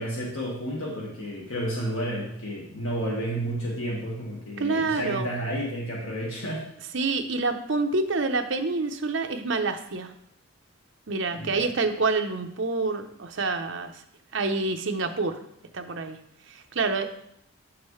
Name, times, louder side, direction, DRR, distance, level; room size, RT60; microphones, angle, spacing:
voice 1, 0.0-6.6 11.3-11.6, right 1 dB, 70° left, -3 dB, 1.6 m, -31 dB
voice 2, 4.6-5.3 6.9-10.1 11.1-13.9 14.3-15.4 15.7-16.2 16.5-17.1, right 3 dB, 60° right, 5 dB, 0.7 m, -27 dB
8.5 x 6.1 x 3.1 m, 0.72 s
head